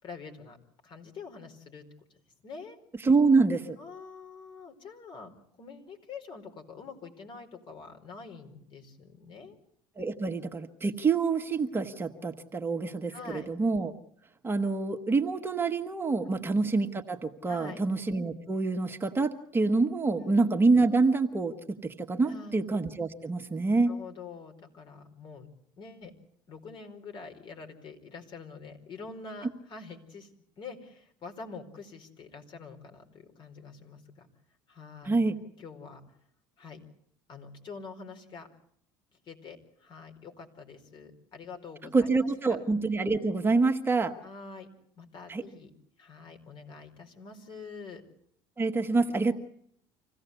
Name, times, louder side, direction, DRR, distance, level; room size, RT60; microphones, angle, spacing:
voice 1, 0.0-0.6 0.8-1.9 2.4-2.8 3.8-5.3 5.6-9.6 13.1-13.5 16.2-16.4 17.5-17.8 20.2-20.4 22.2-22.6 23.9-25.5 25.8-26.1 26.5-30.3 30.6-34.3 34.7-35.2 35.6-36.0 36.6-36.8 37.3-38.5 39.2-42.1 42.4-42.6 44.2-44.7 45.0-45.7 46.0-48.0, left 4 dB, 50° left, 5 dB, 4.7 m, -45 dB
voice 2, 3.0-3.8 10.0-13.1 13.5-13.9 14.4-23.9 35.0-35.4 41.9-44.1 45.3-45.4 48.6-49.3, right 3 dB, 20° right, 5 dB, 1.5 m, -26 dB
26.0 x 16.5 x 8.2 m, 0.68 s
supercardioid pair, 100°, 11 cm